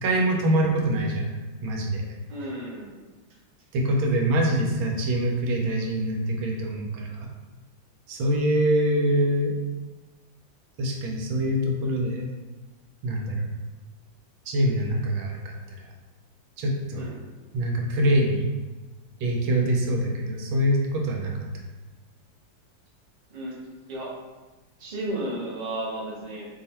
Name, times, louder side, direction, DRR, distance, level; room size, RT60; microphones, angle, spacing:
voice 1, 0.0-1.3 1.6-2.1 3.7-7.3 8.1-9.5 10.8-12.3 13.0-13.4 14.5-15.5 16.6-17.1 17.5-18.5 19.2-21.3, right 1 dB, 85° right, 0 dB, 1.5 m, -24 dB
voice 2, 2.3-3.0 17.0-17.2 23.3-23.5 23.9-24.1 24.8-26.5, right 1 dB, 40° right, -6 dB, 0.6 m, -33 dB
3.4 x 2.3 x 4.1 m, 1.2 s
omnidirectional pair, 2.2 m